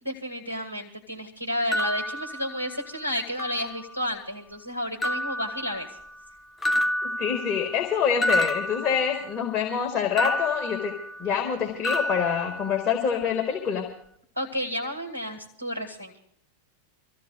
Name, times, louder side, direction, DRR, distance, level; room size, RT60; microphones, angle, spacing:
voice 1, 0.0-5.9 14.4-16.1, equal, 80° right, 4 dB, 1.5 m, -31 dB
sound 1, 1.7-3.0 3.4-4.2 5.0-6.3 6.6-9.6 10.2-11.5 11.8-13.2, equal, 10° left, 0.7 m, -30 dB
voice 2, 7.2-10.9 11.2-13.9, left 7 dB, 30° left, 1 dB, 1.9 m, -26 dB
27.0 x 14.5 x 2.4 m, 0.67 s
figure-of-eight pair, 90°, 0 cm